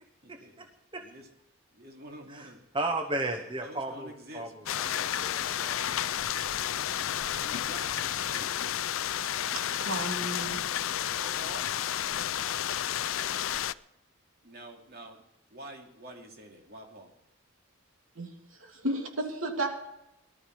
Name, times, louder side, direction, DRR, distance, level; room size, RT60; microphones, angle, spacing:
voice 1, 0.3-0.7 0.9-1.0 2.3-5.8, right 2 dB, 25° right, 0.9 m, -35 dB
voice 2, 1.8-2.6 3.6-4.5 6.7-8.5 11.0-11.7 14.4-15.2 15.5-17.1, right 1 dB, 45° right, 2.8 m, -47 dB
sound 1, 4.7-13.7, left 11 dB, 75° left, 0.4 m, -31 dB
voice 3, 9.7-10.6 18.1-19.7, right 1 dB, 75° right, 3.0 m, -33 dB
19.0 x 12.5 x 4.8 m
head